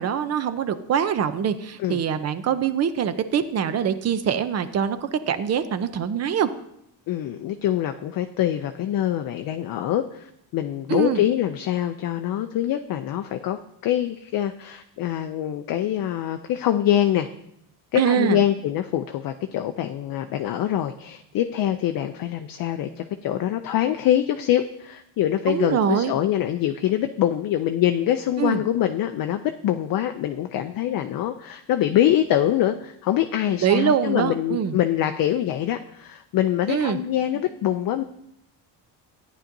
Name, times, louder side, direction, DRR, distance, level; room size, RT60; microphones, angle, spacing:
voice 1, 0.0-6.5 10.9-11.2 18.0-18.4 25.5-26.1 28.4-28.6 33.6-34.8 36.7-37.0, right 8 dB, 35° right, 12 dB, 0.5 m, -23 dB
voice 2, 7.1-17.3 17.9-38.0, left 11 dB, 50° left, 7 dB, 0.4 m, -24 dB
14.0 x 9.9 x 2.6 m, 0.77 s
cardioid pair, 170°, 45 cm